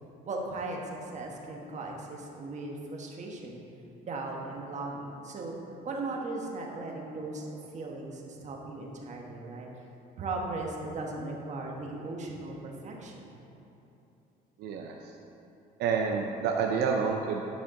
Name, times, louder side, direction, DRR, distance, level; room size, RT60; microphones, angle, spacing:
voice 1, 0.3-3.6 4.0-5.5 5.8-7.5 7.7-9.7 10.2-13.3, right 2 dB, 45° right, 0 dB, 1.3 m, -37 dB
voice 2, 14.6-15.1 15.8-17.4, right 6 dB, 80° right, 1 dB, 0.6 m, -29 dB
9.4 x 5.7 x 3.8 m, 2.9 s
cardioid pair, 110°, 17 cm